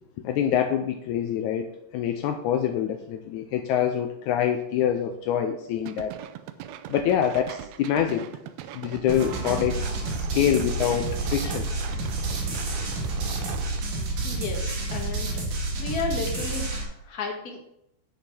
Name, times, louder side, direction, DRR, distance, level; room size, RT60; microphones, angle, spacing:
voice 1, 0.2-1.7 1.9-6.1 6.9-8.2 8.7-11.7, left 9 dB, 80° left, 6 dB, 1.9 m, -25 dB
sound 1, 5.9-13.8, right 11 dB, 85° right, 1.6 m, -39 dB
sound 2, 9.1-16.8, right 2 dB, 65° right, 3.2 m, -29 dB
voice 2, 14.2-15.4 15.8-17.6, left 4 dB, 35° left, 0 dB, 1.8 m, -33 dB
10.0 x 5.2 x 6.0 m, 0.78 s
omnidirectional pair, 3.8 m